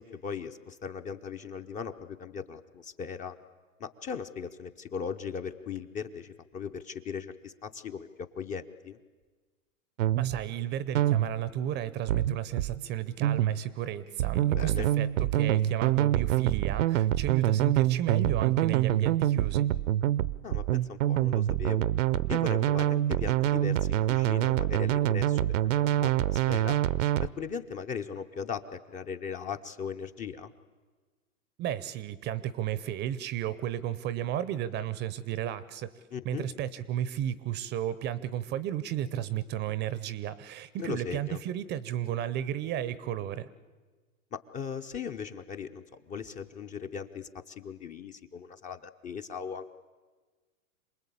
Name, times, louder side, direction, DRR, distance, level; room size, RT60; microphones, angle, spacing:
voice 1, 0.0-3.3 3.8-8.1 8.4-9.0 14.5-14.9 20.4-21.9 22.3-25.4 25.6-26.8 27.2-30.5 36.1-36.5 40.8-41.4 44.3-49.7, left 6 dB, 20° left, 8 dB, 0.7 m, -38 dB
sound 1, 10.0-10.4 11.0-11.4 12.1-12.8 13.2-13.6 14.2-27.3, right 13 dB, 60° right, 0.8 m, -26 dB
voice 2, 10.2-19.7 31.6-35.9 36.2-43.5, right 11 dB, 25° right, 17 dB, 0.7 m, -33 dB
27.5 x 19.5 x 8.5 m, 1.4 s
hypercardioid pair, 125°, 42 cm